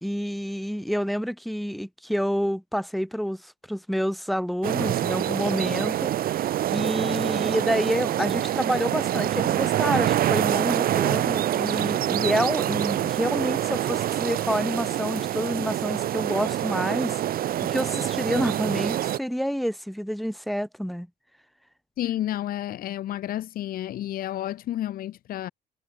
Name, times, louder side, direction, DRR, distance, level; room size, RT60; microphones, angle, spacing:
voice 1, 0.0-6.4 6.7-17.2 17.6-21.1, equal, ahead, 1.4 m, -28 dB
sound 1, 4.6-19.2, right 12 dB, 60° right, 1.6 m, -26 dB
voice 2, 22.0-25.5, left 13 dB, 60° left, 1.0 m, -30 dB
cardioid pair, 110°, 17 cm